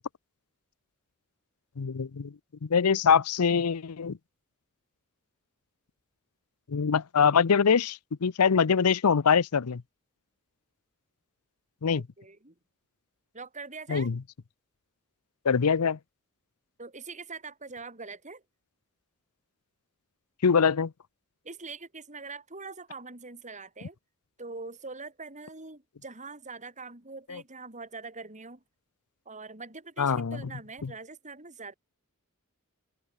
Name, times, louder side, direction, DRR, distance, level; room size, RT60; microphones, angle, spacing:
voice 1, 1.8-2.3 2.6-4.2 6.7-9.8 11.8-12.0 13.9-14.2 15.4-16.0 20.4-20.9 27.3-27.4 30.0-30.4 30.8-30.9, left 6 dB, 85° left, 0.6 m, -24 dB
voice 2, 11.9-12.5 13.3-14.1 16.8-18.4 21.4-24.0 24.4-28.6 29.3-31.7, right 4 dB, 35° right, 5.7 m, -43 dB
open air
head